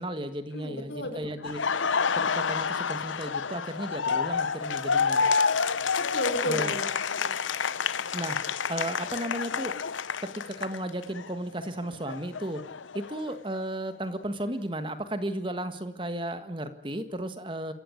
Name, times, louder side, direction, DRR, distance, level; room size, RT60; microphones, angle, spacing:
voice 1, 0.0-1.6 2.2-5.2 6.5-6.7 8.1-8.4 8.7-9.8 10.2-12.6 12.9-17.7, right 1 dB, 25° right, 10 dB, 1.7 m, -34 dB
voice 2, 0.5-1.5 6.0-7.4, left 1 dB, 70° left, 7 dB, 4.6 m, -34 dB
Laughter, 1.4-11.3 11.6-13.6, left 5 dB, 90° left, 0.9 m, -29 dB
27.0 x 15.0 x 9.8 m, 0.78 s
head